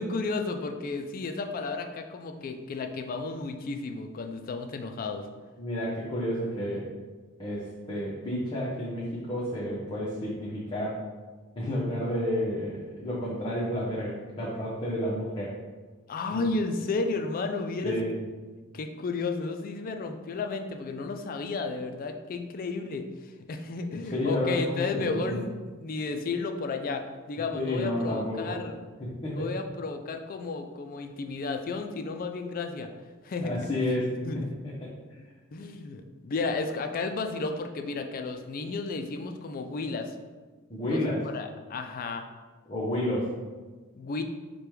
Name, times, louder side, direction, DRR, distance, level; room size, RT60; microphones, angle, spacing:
voice 1, 0.0-5.3 16.1-18.0 18.7-25.5 25.8-28.8 29.3-32.9 33.2-33.8 34.2-34.5 35.2-35.3 35.5-40.1 40.8-42.3 43.9-44.2, left 3 dB, 40° left, 6 dB, 0.4 m, -33 dB
voice 2, 5.6-6.9 7.4-11.0 11.6-15.6 16.3-16.5 17.8-18.2 24.1-25.4 27.5-28.6 29.0-29.6 33.4-34.7 40.7-41.3 42.7-43.3, left 1 dB, 25° left, -7 dB, 0.7 m, -31 dB
5.0 x 2.2 x 4.5 m, 1.3 s
head